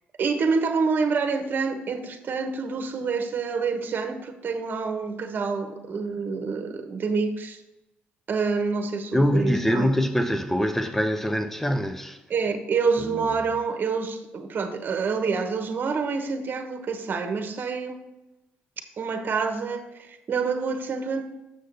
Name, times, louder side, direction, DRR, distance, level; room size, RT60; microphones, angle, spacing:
voice 1, 0.2-7.6 8.3-9.9 12.3-18.0 19.0-21.2, right 5 dB, 50° right, 1.1 m, -27 dB
voice 2, 9.1-12.2 13.0-13.3, equal, 5° left, 0.9 m, -24 dB
6.8 x 6.4 x 3.9 m
cardioid pair, 80°, 4 cm